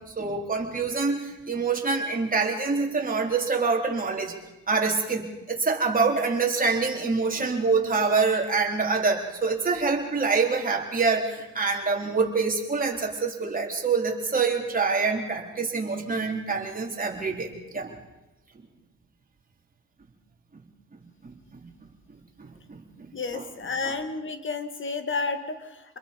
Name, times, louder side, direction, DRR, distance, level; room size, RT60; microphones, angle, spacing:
voice 1, 0.2-4.3 4.7-17.9 21.2-21.7 22.4-23.4 23.8-23.9, right 4 dB, 30° right, 0 dB, 4.0 m, -26 dB
voice 2, 23.1-26.0, left 4 dB, 40° left, 9 dB, 2.2 m, -31 dB
27.5 x 21.5 x 5.4 m, 1.0 s
cardioid pair, 90°, 30 cm